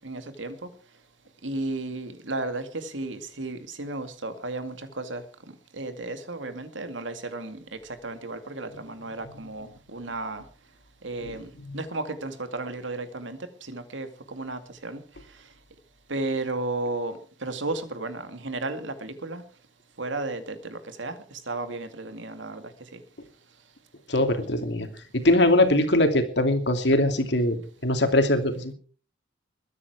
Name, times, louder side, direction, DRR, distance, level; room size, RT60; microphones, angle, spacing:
voice 1, 0.1-0.5 1.4-2.6 2.9-4.7 5.1-5.2 5.8-7.5 8.0-8.7 9.0-9.6 9.9-10.4 11.0-11.4 11.7-13.3 13.7-14.1 14.4-14.9 16.1-17.1 17.4-18.2 18.5-18.8 19.2-19.4 20.0-20.4 21.0-21.1 21.5-21.9 22.2-22.5, right 2 dB, 80° right, 9 dB, 2.3 m, -32 dB
voice 2, 24.1-24.9 25.1-28.7, left 1 dB, 65° left, 6 dB, 2.7 m, -22 dB
22.0 x 9.7 x 4.9 m, 0.40 s
head